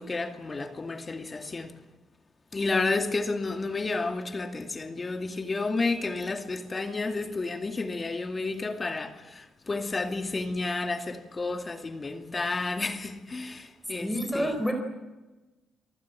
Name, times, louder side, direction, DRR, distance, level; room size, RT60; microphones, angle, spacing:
voice 1, 0.0-1.8 2.5-14.6, left 3 dB, 30° left, 2.4 m, -31 dB
voice 2, 14.0-14.7, equal, ahead, 4.2 m, -28 dB
28.0 x 19.0 x 7.5 m
cardioid pair, 90°, 0 cm